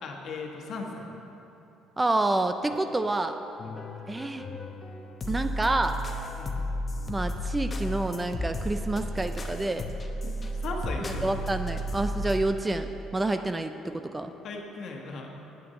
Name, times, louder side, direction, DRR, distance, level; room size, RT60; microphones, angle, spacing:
voice 1, 0.0-1.1 3.6-3.9 6.4-6.6 10.2-11.4 14.4-15.3, left 4 dB, 55° left, 1 dB, 1.3 m, -38 dB
voice 2, 2.0-3.4 4.1-4.5 5.3-6.0 7.1-9.9 11.0-14.3, right 2 dB, 15° right, 8 dB, 0.4 m, -28 dB
sound 1, 2.7-3.2 3.6-12.4, equal, 25° left, 0.9 m, -33 dB
9.1 x 6.1 x 8.1 m, 3.0 s
cardioid pair, 130°, 0 cm